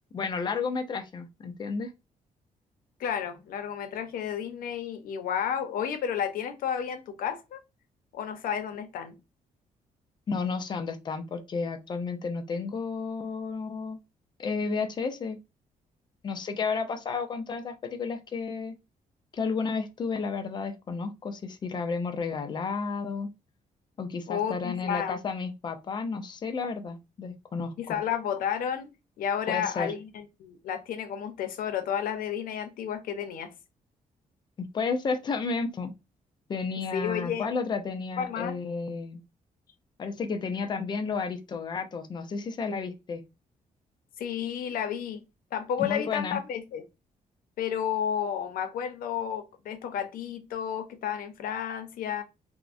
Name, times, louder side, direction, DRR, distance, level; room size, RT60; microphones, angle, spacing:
voice 1, 0.1-1.9 10.3-14.0 14.4-15.4 16.2-18.7 19.3-23.3 24.0-28.0 29.5-29.9 34.6-35.9 36.5-39.2 40.0-43.2 45.8-46.4, left 4 dB, 30° left, 0.4 m, -32 dB
voice 2, 3.0-7.6 8.1-9.1 24.3-25.2 27.8-28.9 29.2-33.5 36.9-37.5 38.2-38.6 44.2-45.2 45.5-46.8 47.6-52.2, left 8 dB, 90° left, 0.6 m, -31 dB
3.5 x 2.0 x 2.4 m
wide cardioid pair, 175°, 14 cm